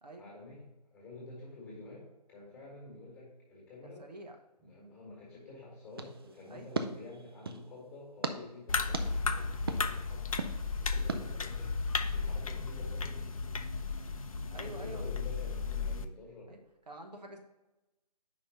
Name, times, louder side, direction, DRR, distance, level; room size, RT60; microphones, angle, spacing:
voice 1, 0.2-4.1 4.6-10.3 10.8-11.8 12.1-13.3 14.5-16.6, left 2 dB, 10° left, -4 dB, 1.5 m, -49 dB
voice 2, 3.8-4.4 6.5-6.7 14.5-15.0 16.5-16.6 16.9-17.4, right 1 dB, 75° right, 3 dB, 1.2 m, -47 dB
sound 1, 5.9-7.7 8.2-8.4 8.9-9.1 9.7-9.8 10.4-10.5 11.1-11.2, right 4 dB, 35° right, 0.5 m, -37 dB
sound 2, 8.7-16.1, left 4 dB, 55° left, 0.5 m, -34 dB
5.2 x 4.1 x 5.8 m, 1.0 s
figure-of-eight pair, 145°, 21 cm